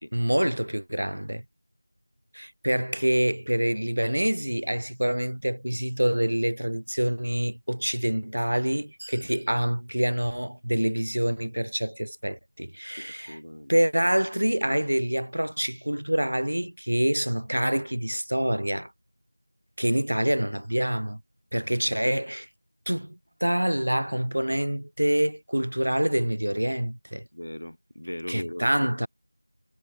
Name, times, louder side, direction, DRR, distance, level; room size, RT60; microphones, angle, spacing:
voice 1, 0.1-1.4 2.3-13.4 13.7-18.9 19.8-21.2 21.5-22.5 22.9-27.3 28.3-29.1, right 1 dB, 55° right, 0.6 m, -26 dB
voice 2, 13.0-13.7 27.3-28.9, left 1 dB, 45° left, 2.4 m, -38 dB
figure-of-eight pair, 180°, 0 cm